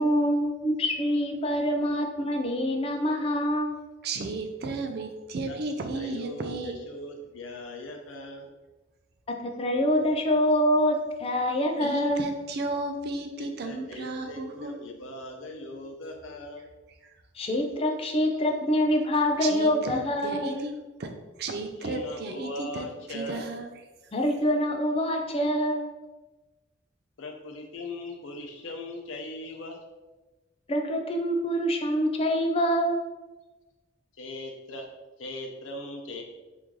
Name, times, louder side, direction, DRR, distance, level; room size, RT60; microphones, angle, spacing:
voice 1, 0.0-3.7 9.4-12.3 17.3-20.6 24.1-25.9 30.7-33.0, equal, 30° left, 2 dB, 0.4 m, -25 dB
voice 2, 4.0-6.8 11.8-14.8 16.6-17.1 19.4-20.7 21.0-23.8, right 3 dB, 55° right, 5 dB, 0.4 m, -34 dB
voice 3, 5.9-8.5 13.4-16.7 21.8-23.5 27.2-29.8 34.2-34.9 35.2-36.2, left 1 dB, 85° left, 1 dB, 0.6 m, -39 dB
3.0 x 2.6 x 3.6 m, 1.1 s
head